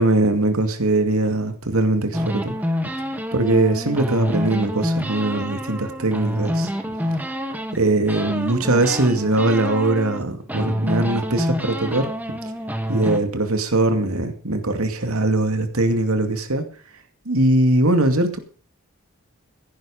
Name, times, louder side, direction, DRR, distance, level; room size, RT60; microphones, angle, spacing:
voice 1, 0.0-2.5 3.3-6.7 7.7-12.1 12.9-16.7 17.3-18.4, right 2 dB, 80° right, 8 dB, 2.4 m, -21 dB
sound 1, 2.1-7.8 8.1-10.2 10.5-13.2, equal, 10° right, 1.5 m, -27 dB
16.0 x 11.0 x 5.1 m, 0.38 s
head